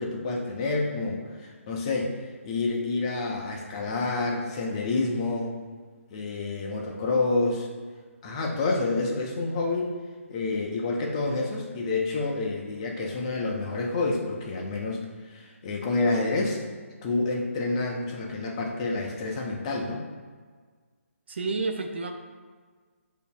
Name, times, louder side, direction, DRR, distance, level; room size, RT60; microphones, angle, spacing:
voice 1, 0.0-2.2 2.4-5.6 6.1-7.7 8.2-9.9 10.3-16.6 17.0-20.0, left 3 dB, 25° left, -1 dB, 0.6 m, -28 dB
voice 2, 21.3-22.1, right 3 dB, 50° right, 4 dB, 0.5 m, -30 dB
8.0 x 2.7 x 2.3 m, 1.5 s
figure-of-eight pair, 145°, 8 cm